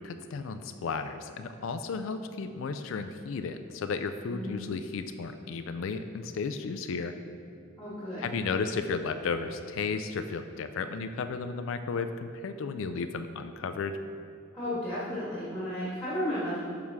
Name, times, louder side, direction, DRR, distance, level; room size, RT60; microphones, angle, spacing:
voice 1, 0.0-7.1 8.2-14.0, left 4 dB, 65° left, 9 dB, 0.4 m, -34 dB
voice 2, 4.3-4.6 7.8-8.3 14.5-16.6, left 1 dB, 10° left, -10 dB, 2.0 m, -33 dB
7.3 x 4.8 x 5.9 m, 2.5 s
head